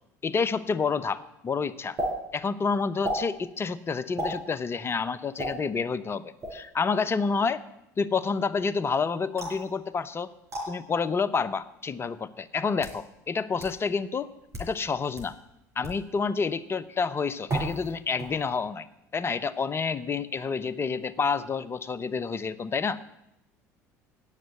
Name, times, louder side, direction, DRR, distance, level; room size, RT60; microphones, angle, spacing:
voice 1, 0.2-2.0 2.3-7.6 8.0-10.3 10.7-14.3 14.6-15.4 15.8-18.9 19.1-23.0, left 5 dB, 30° left, 17 dB, 0.7 m, -29 dB
sound 1, 2.0-2.1 3.0-3.2 4.2-4.4 5.4-5.5 6.4-6.7 9.4-9.7 10.5-10.7 11.6-11.7 12.5-13.0 13.6-13.7 14.4-14.7 15.2-15.3 15.8-16.0 17.5-17.9 18.2-18.6, right 1 dB, 35° right, 5.5 m, -32 dB
9.8 x 7.5 x 9.2 m, 0.85 s
hypercardioid pair, 70°, 9 cm